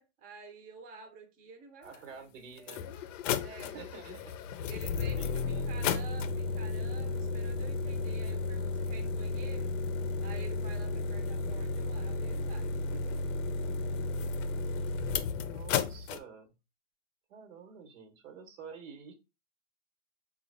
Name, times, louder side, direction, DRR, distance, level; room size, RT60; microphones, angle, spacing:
voice 1, 0.0-2.3 2.6-3.0 3.4-3.8 4.7-9.7 10.2-13.2, right 4 dB, 25° right, 0.5 m, -50 dB
voice 2, 1.8-2.9 3.6-4.3 5.0-5.7 15.4-16.5 17.3-19.1, right 6 dB, 90° right, 1.2 m, -49 dB
sound 1, 1.9-2.0 2.6-16.2, left 4 dB, 90° left, 0.5 m, -33 dB
4.0 x 2.3 x 3.2 m
supercardioid pair, 145°, 37 cm